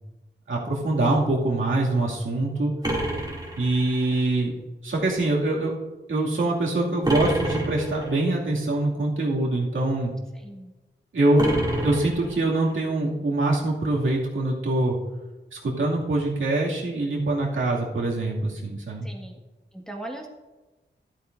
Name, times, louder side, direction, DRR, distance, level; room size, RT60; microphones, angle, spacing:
voice 1, 0.5-2.7 3.6-4.5 4.8-5.7 6.1-10.1 11.1-11.5 11.8-15.0 15.5-19.1, right 2 dB, 90° right, -3 dB, 2.4 m, -24 dB
sound 1, 2.8-4.2 7.0-8.2 11.4-12.7, right 1 dB, 20° right, 2.6 m, -28 dB
voice 2, 10.3-10.7 19.0-19.4 19.7-20.3, right 1 dB, 5° left, -1 dB, 1.7 m, -38 dB
12.5 x 12.0 x 2.6 m, 1.1 s
wide cardioid pair, 90°, 20 cm